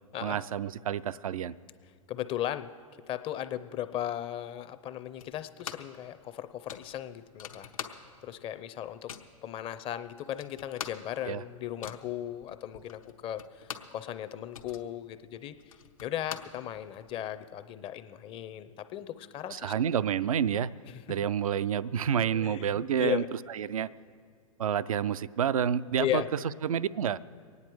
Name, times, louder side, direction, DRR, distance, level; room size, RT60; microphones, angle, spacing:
voice 1, 0.2-1.6 11.3-11.4 19.5-20.7 21.1-23.2 23.5-23.9 24.6-26.2 26.6-27.2, right 8 dB, 80° right, 15 dB, 0.4 m, -29 dB
voice 2, 2.1-2.7 3.1-7.7 8.2-9.1 9.4-19.7 20.9-21.0 22.3-23.3 26.0-26.3, left 11 dB, 30° left, 12 dB, 0.6 m, -36 dB
sound 1, 5.2-6.0 6.3-6.4 6.7-8.4 8.6-9.4 9.9-10.0 10.2-14.0 14.3-17.1, left 8 dB, 75° left, 1.1 m, -44 dB
23.5 x 9.6 x 4.6 m, 2.1 s
hypercardioid pair, 105°, 18 cm